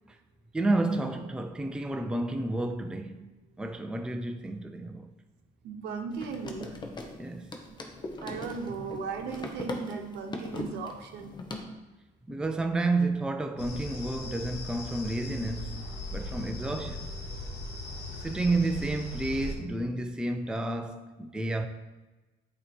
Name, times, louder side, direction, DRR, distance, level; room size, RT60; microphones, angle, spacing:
voice 1, 0.5-3.3 3.6-5.1 7.2-7.5 12.3-17.1 18.2-21.7, right 2 dB, 5° right, 0.4 m, -31 dB
voice 2, 5.6-6.8 7.7-7.9 8.2-11.3 17.3-17.4, right 5 dB, 85° right, 0.8 m, -37 dB
sound 1, 6.1-11.6, left 2 dB, 25° left, 0.8 m, -40 dB
sound 2, 13.6-19.5, left 2 dB, 85° left, 1.2 m, -38 dB
8.0 x 2.9 x 4.3 m
cardioid pair, 110°, 17 cm